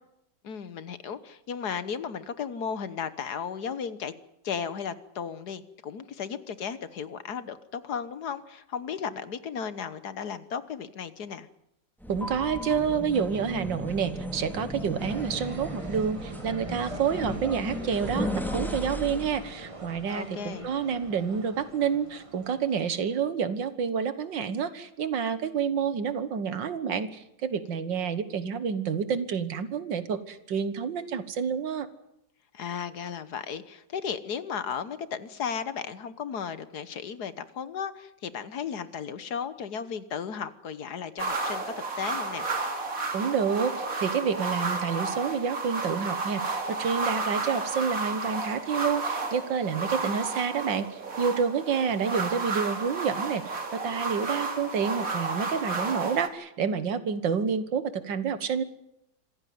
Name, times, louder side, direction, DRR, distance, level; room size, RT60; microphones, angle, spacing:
voice 1, 0.4-4.1 4.4-11.5 20.1-20.7 32.5-42.5, left 7 dB, 60° left, 14 dB, 1.6 m, -35 dB
sound 1, 12.0-19.5, equal, ahead, 2.3 m, -35 dB
voice 2, 12.1-31.9 43.1-58.6, right 6 dB, 70° right, 13 dB, 2.0 m, -29 dB
sound 2, 15.0-23.0, right 2 dB, 20° right, 1.6 m, -44 dB
sound 3, 41.2-56.3, right 3 dB, 45° right, 2.8 m, -32 dB
26.0 x 15.5 x 9.4 m, 0.81 s
omnidirectional pair, 2.0 m